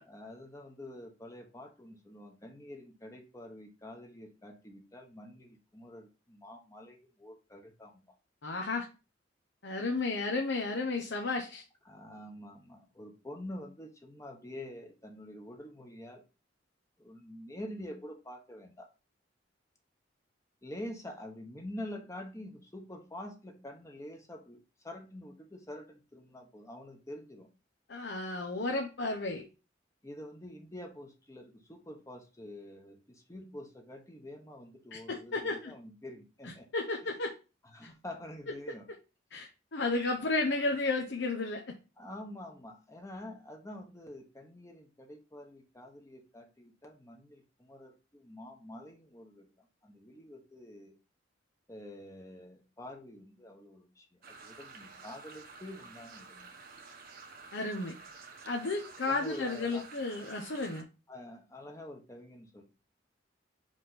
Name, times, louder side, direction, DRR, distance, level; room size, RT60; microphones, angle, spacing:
voice 1, 0.0-8.1 11.8-16.2 17.0-18.9 20.6-27.5 30.0-36.7 37.0-37.1 37.6-38.9 42.0-51.0 51.7-56.5 59.0-59.9 61.1-62.6, left 1 dB, 15° left, 3 dB, 1.1 m, -47 dB
voice 2, 8.4-8.9 9.6-11.6 27.9-29.4 34.9-35.7 36.7-37.3 39.3-41.6 57.5-57.9 58.4-60.9, left 3 dB, 65° left, 2 dB, 0.9 m, -33 dB
sound 1, 54.2-60.8, right 4 dB, 50° right, 1.1 m, -51 dB
5.2 x 5.0 x 4.1 m, 0.31 s
head